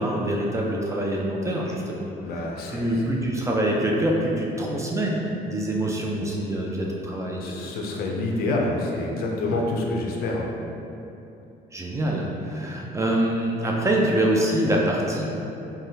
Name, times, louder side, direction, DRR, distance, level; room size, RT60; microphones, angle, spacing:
voice 1, 0.0-2.0 2.4-7.7 9.5-9.7 11.7-15.2, right 1 dB, 20° right, -2 dB, 0.3 m, -25 dB
voice 2, 2.2-3.0 7.4-10.4, left 2 dB, 65° left, -1 dB, 0.5 m, -27 dB
3.3 x 2.2 x 2.7 m, 2.9 s
cardioid pair, 110°, 17 cm